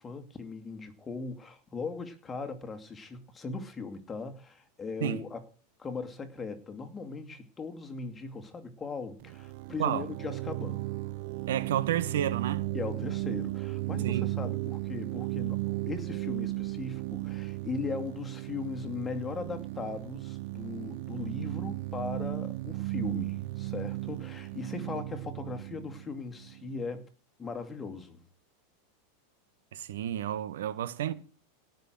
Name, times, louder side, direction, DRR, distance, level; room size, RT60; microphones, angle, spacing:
voice 1, 0.0-5.4 5.8-10.9 12.7-27.1 27.4-28.2, left 4 dB, 20° left, 2.6 m, -39 dB
sound 1, 9.2-26.8, right 20 dB, 65° right, 0.5 m, -35 dB
voice 2, 11.5-12.7 14.0-14.3 29.7-31.1, right 10 dB, 80° right, 1.6 m, -31 dB
17.5 x 6.5 x 6.3 m
supercardioid pair, 120°, 0 cm